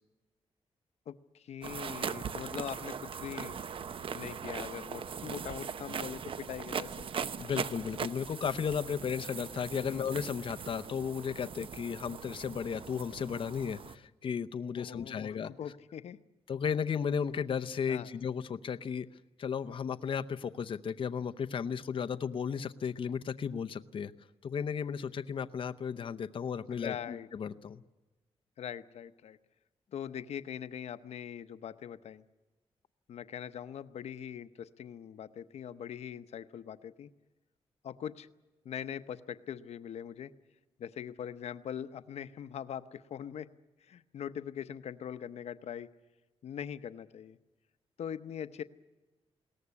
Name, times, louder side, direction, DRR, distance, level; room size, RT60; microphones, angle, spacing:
voice 1, 1.1-3.5 4.1-7.1 9.9-10.1 14.8-16.2 17.9-18.1 26.7-27.3 28.6-29.4 29.9-32.2 33.1-37.1 37.8-38.3 38.6-40.3 40.8-43.5 43.8-45.9 46.4-47.4 48.0-48.6, left 9 dB, 85° left, 12 dB, 0.8 m, -42 dB
sound 1, 1.6-14.0, right 6 dB, 55° right, 0.8 m, -40 dB
voice 2, 7.4-15.5 16.5-19.1 19.4-24.1 24.4-27.8, left 7 dB, 55° left, 9 dB, 0.7 m, -34 dB
21.5 x 18.0 x 9.6 m, 1.2 s
wide cardioid pair, 120°, 11 cm